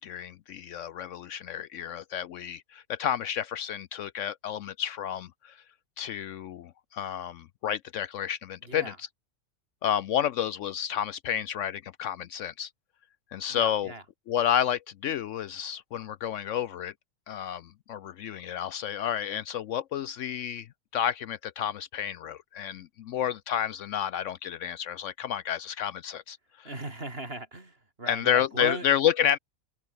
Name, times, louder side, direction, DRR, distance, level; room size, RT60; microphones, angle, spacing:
voice 1, 0.0-5.6 6.0-9.1 9.8-12.7 13.3-13.9 14.3-16.9 17.3-20.7 20.9-26.7 28.1-29.4, left 9 dB, 70° left, 0.9 m, -30 dB
voice 2, 13.5-14.0 26.6-28.9, right 2 dB, 45° right, 4.4 m, -38 dB
open air
omnidirectional pair, 1.5 m